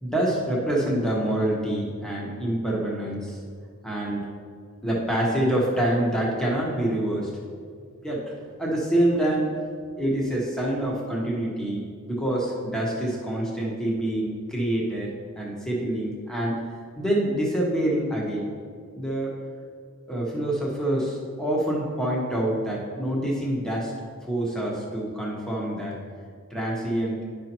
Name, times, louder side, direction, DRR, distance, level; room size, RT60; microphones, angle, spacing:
voice 1, 0.0-3.4 3.8-4.3 4.8-7.3 8.0-8.2 8.6-9.5 10.0-16.6 17.0-18.5 19.0-19.3 20.1-23.9 24.3-25.9 26.5-27.2, right 1 dB, 5° left, -4 dB, 1.2 m, -26 dB
10.5 x 5.4 x 3.0 m, 2.1 s
head